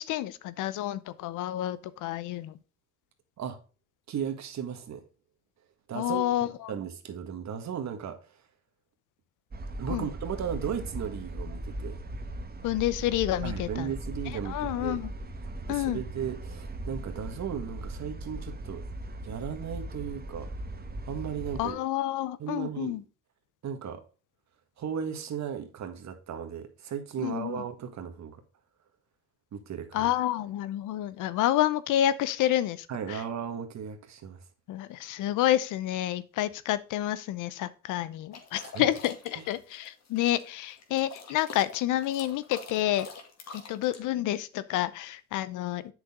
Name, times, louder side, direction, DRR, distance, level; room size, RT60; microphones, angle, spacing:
voice 1, 0.0-2.5 5.9-6.7 9.9-10.1 12.6-13.9 14.5-15.1 15.7-16.0 21.6-23.0 27.2-27.6 29.9-33.2 34.7-43.1 43.5-45.9, left 13 dB, 90° left, 0.7 m, -29 dB
voice 2, 4.1-5.0 5.9-8.2 9.8-12.0 13.4-15.0 15.7-18.8 19.2-20.5 21.1-21.8 22.4-23.0 23.6-24.0 24.8-28.4 29.5-30.1 32.9-34.4 38.6-38.9 39.3-39.4, right 8 dB, 65° right, 1.6 m, -36 dB
sound 1, 9.5-21.7, right 1 dB, 30° right, 1.3 m, -38 dB
sound 2, 38.3-44.0, left 5 dB, 60° left, 2.2 m, -46 dB
8.1 x 6.3 x 3.6 m
cardioid pair, 90°, 30 cm